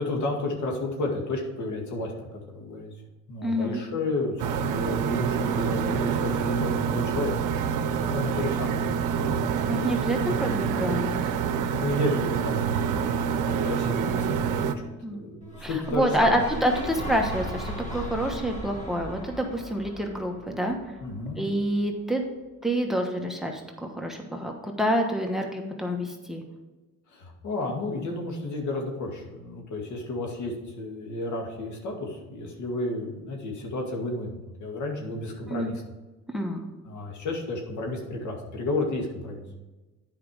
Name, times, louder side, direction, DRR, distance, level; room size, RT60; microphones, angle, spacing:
voice 1, 0.0-2.9 3.3-7.3 7.8-8.8 11.7-14.7 15.1-16.4 21.0-21.4 27.1-35.8 36.8-39.4, left 2 dB, 75° left, 0 dB, 2.0 m, -32 dB
voice 2, 3.4-3.8 9.7-11.1 15.0-15.2 15.6-21.0 21.4-22.2 22.6-26.4 35.5-35.7 36.3-36.7, equal, ahead, 3 dB, 1.2 m, -27 dB
sound 1, 4.4-14.7, right 7 dB, 85° right, 0.7 m, -26 dB
sound 2, 15.5-21.6, equal, 25° left, 1.9 m, -37 dB
9.4 x 5.0 x 4.9 m, 1.2 s
cardioid pair, 90°, 30 cm